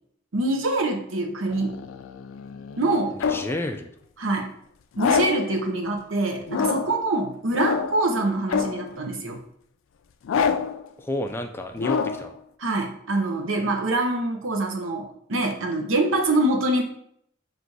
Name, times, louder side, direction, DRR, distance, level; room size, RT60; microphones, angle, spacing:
voice 1, 0.3-1.8 2.8-3.2 4.2-4.5 5.0-9.4 12.6-16.8, right 2 dB, 90° right, 3 dB, 0.8 m, -25 dB
sound 1, 1.5-3.6 5.0-5.5 6.5-7.0 7.5-8.1 8.5-9.0 10.2-10.8 11.8-12.3, left 6 dB, 85° left, 0.4 m, -26 dB
voice 2, 3.1-3.9 11.0-12.3, left 1 dB, 10° left, 5 dB, 0.3 m, -31 dB
3.9 x 2.5 x 4.6 m, 0.68 s
head